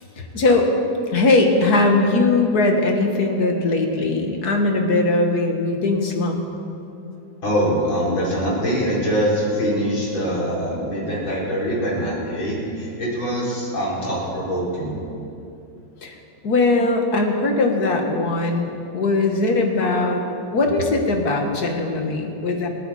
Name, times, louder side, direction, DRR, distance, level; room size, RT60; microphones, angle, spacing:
voice 1, 0.2-0.7 1.1-6.4 16.0-16.1 16.4-20.2 20.5-22.7, left 2 dB, 55° left, 3 dB, 2.0 m, -20 dB
voice 2, 7.4-15.0, equal, 85° left, -6 dB, 5.1 m, -23 dB
28.0 x 9.6 x 4.3 m, 2.7 s
omnidirectional pair, 2.1 m